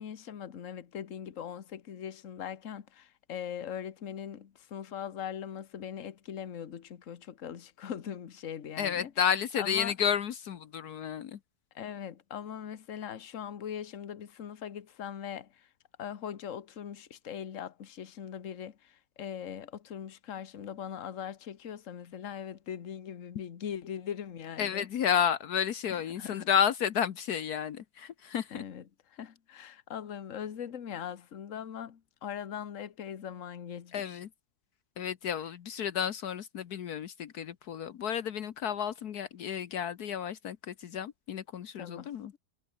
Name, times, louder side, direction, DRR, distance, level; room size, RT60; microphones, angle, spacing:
voice 1, 0.0-9.1 9.6-9.9 11.7-15.7 16.0-24.9 25.9-26.5 28.5-28.8 29.1-34.2 41.8-42.4, left 8 dB, 55° left, 1.6 m, -41 dB
voice 2, 8.8-11.4 24.6-28.6 33.9-34.3 35.0-42.3, left 8 dB, 75° left, 1.5 m, -31 dB
omnidirectional pair, 1.7 m